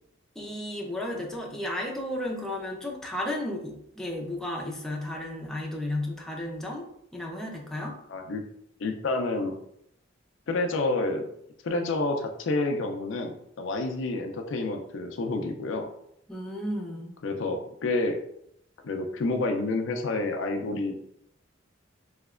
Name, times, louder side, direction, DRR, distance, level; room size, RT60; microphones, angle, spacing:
voice 1, 0.4-6.9 7.1-7.9 16.3-17.1, left 1 dB, 5° left, -2 dB, 0.5 m, -33 dB
voice 2, 8.1-8.4 8.8-9.5 10.5-11.3 11.6-15.9 17.2-18.2 18.8-21.1, left 2 dB, 75° left, 5 dB, 0.4 m, -29 dB
3.2 x 2.8 x 2.4 m, 0.73 s
head